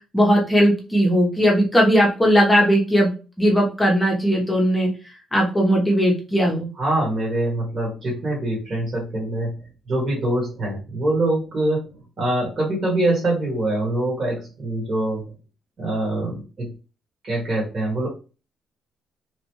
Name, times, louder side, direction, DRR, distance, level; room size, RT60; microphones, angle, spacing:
voice 1, 0.1-3.1 3.4-4.9 5.3-6.7, equal, 10° left, -2 dB, 0.9 m, -18 dB
voice 2, 6.8-9.5 9.9-11.8 12.2-15.2 15.8-16.7 17.2-18.1, right 1 dB, 40° right, -4 dB, 1.7 m, -24 dB
3.1 x 2.4 x 3.0 m, 0.33 s
cardioid pair, 110°, 0 cm